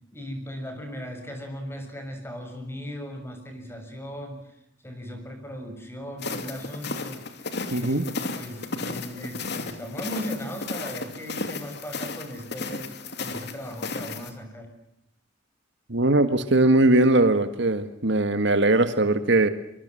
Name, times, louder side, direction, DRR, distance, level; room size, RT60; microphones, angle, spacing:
voice 1, 0.1-4.4 4.8-7.2 7.7-12.9 13.2-14.7, equal, 15° left, 5 dB, 6.7 m, -37 dB
sound 1, 6.2-14.3, left 3 dB, 60° left, 2.9 m, -34 dB
voice 2, 7.7-8.1 15.9-19.5, right 2 dB, 65° right, 10 dB, 1.8 m, -20 dB
25.0 x 24.5 x 7.8 m, 0.79 s
head